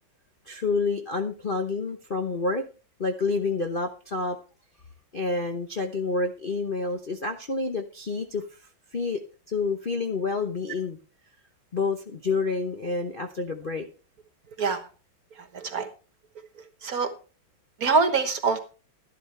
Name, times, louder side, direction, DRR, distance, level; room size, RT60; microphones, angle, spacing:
voice 1, 0.5-2.6 3.0-4.4 5.1-8.4 8.9-9.2 9.5-11.0 11.7-13.9, left 3 dB, 40° left, 4 dB, 0.7 m, -28 dB
voice 2, 15.5-15.9 16.8-17.1 17.8-18.6, right 4 dB, 50° right, 8 dB, 1.6 m, -24 dB
12.0 x 11.5 x 3.3 m, 0.35 s
omnidirectional pair, 2.2 m